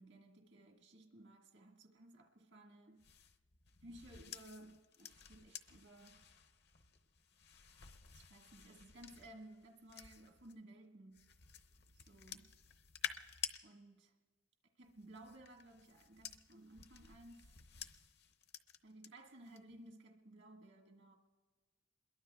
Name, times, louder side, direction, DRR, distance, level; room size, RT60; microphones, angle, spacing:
voice 1, 0.0-3.1 3.8-6.2 8.1-11.2 11.9-12.5 13.6-14.1 14.8-17.5 18.8-21.2, right 1 dB, 65° right, 2 dB, 1.7 m, -58 dB
sound 1, 3.0-10.5 11.1-13.6 14.8-19.1 19.4-19.8, left 9 dB, 55° left, 0.8 m, -51 dB
28.0 x 22.0 x 2.3 m, 1.4 s
head